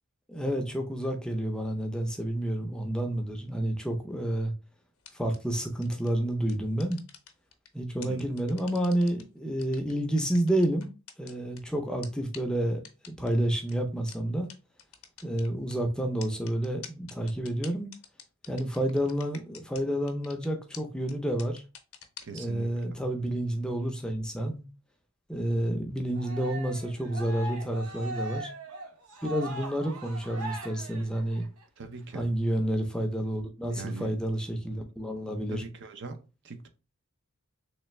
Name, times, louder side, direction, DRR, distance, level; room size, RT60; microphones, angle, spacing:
voice 1, 0.3-4.5 5.1-7.0 7.7-10.9 11.2-12.8 13.2-14.5 15.2-17.9 18.5-21.6 22.3-24.7 25.3-28.5 29.2-31.5 32.1-35.6, right 1 dB, 5° left, 0.5 m, -29 dB
sound 1, 5.0-5.4 5.8-6.1 6.5-7.7 8.0-9.2 9.6-11.6 12.0-12.1 12.3-12.4 12.8-13.3 13.7-13.8 14.1-14.2 14.5-14.6 14.8-15.7 16.2-19.8 20.1-20.5 20.7-20.8 21.1-21.2 21.4-22.4, left 9 dB, 65° left, 0.7 m, -46 dB
voice 2, 8.0-8.3 22.2-22.8 31.8-32.3 33.7-34.2 35.5-36.7, right 4 dB, 55° right, 0.5 m, -41 dB
Cheering, 26.1-31.6, right 1 dB, 85° right, 0.8 m, -40 dB
3.2 x 3.2 x 3.1 m
head